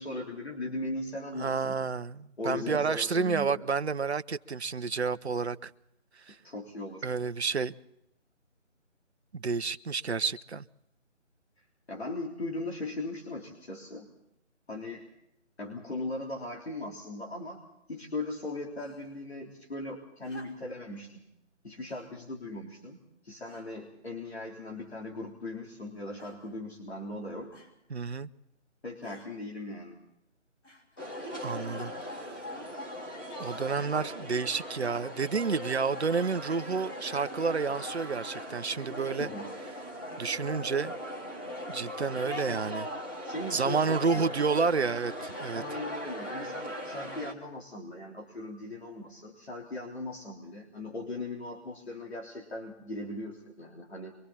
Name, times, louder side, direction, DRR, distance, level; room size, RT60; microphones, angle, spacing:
voice 1, 0.0-1.8 2.4-3.7 6.4-7.1 11.9-14.1 14.7-15.0 15.6-17.6 17.9-21.2 21.6-23.0 23.2-27.6 28.8-30.0 39.2-39.5 42.5-42.6 43.2-44.3 45.5-54.1, left 2 dB, 55° left, 3.6 m, -38 dB
voice 2, 1.4-5.7 6.3-6.4 7.0-7.7 9.3-10.7 27.9-28.3 31.4-32.4 33.4-39.3 40.2-40.9 41.7-42.9 43.5-45.6, right 5 dB, 60° right, 0.8 m, -30 dB
sound 1, 18.8-19.2 20.2-20.9 21.8-22.1 22.9-23.0 23.4-23.9 24.7-25.3 26.2-26.6 27.5-27.8 29.0-29.3 30.6-31.1 32.1-32.2, left 1 dB, 70° left, 5.6 m, -55 dB
sound 2, 31.0-47.3, equal, 15° left, 1.5 m, -39 dB
28.5 x 24.0 x 4.2 m
figure-of-eight pair, 170°, 37 cm